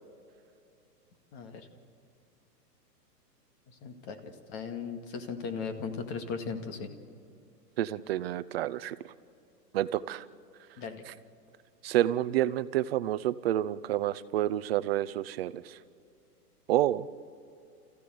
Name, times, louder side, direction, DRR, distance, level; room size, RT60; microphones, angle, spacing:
voice 1, 1.3-1.7 3.7-6.9 10.8-11.0, left 5 dB, 30° left, 6 dB, 2.1 m, -38 dB
voice 2, 7.8-9.0 9.7-10.2 11.8-15.8 16.7-17.1, right 13 dB, 40° right, 15 dB, 0.6 m, -29 dB
28.0 x 15.5 x 7.8 m, 2.6 s
hypercardioid pair, 145°, 49 cm